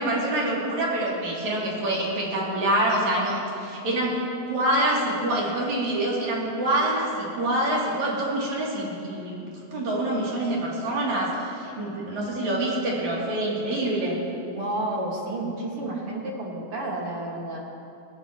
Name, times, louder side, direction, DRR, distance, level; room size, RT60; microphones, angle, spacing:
voice 1, 0.0-4.2 4.5-14.2, right 1 dB, 70° right, -5 dB, 4.4 m, -26 dB
voice 2, 14.5-17.6, right 2 dB, 50° right, -2 dB, 2.8 m, -31 dB
22.0 x 17.5 x 3.1 m, 2.7 s
omnidirectional pair, 3.4 m